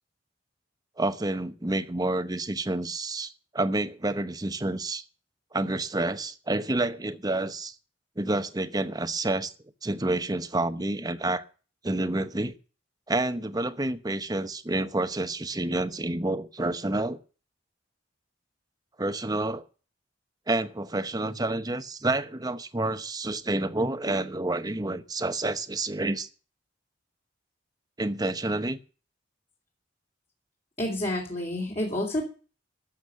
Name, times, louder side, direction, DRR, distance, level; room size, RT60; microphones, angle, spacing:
voice 1, 1.0-5.0 5.5-7.7 8.2-9.5 9.8-11.4 11.8-12.5 13.1-17.2 19.0-19.6 20.5-26.3 28.0-28.8, right 2 dB, 20° right, 11 dB, 0.9 m, -29 dB
voice 2, 30.8-32.2, left 1 dB, 35° left, -2 dB, 3.1 m, -29 dB
13.0 x 7.3 x 9.6 m, 0.36 s
head